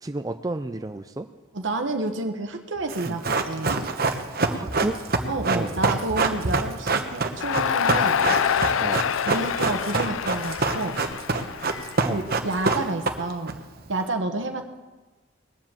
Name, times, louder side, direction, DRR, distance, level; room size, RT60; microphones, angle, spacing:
voice 1, 0.0-1.3 3.1-3.4 4.5-5.0 5.5-5.8 8.8-9.1 12.0-12.2, right 2 dB, 20° right, 8 dB, 0.4 m, -31 dB
voice 2, 1.5-3.8 5.3-8.2 9.3-11.0 12.0-13.6 13.9-14.8, right 2 dB, 70° right, 4 dB, 1.2 m, -29 dB
Run, 2.9-13.5 13.8-13.9, right 3 dB, 50° right, 1.1 m, -25 dB
Crowd, 7.4-12.6, left 8 dB, 90° left, 0.4 m, -26 dB
20.0 x 7.9 x 7.4 m, 1.2 s
head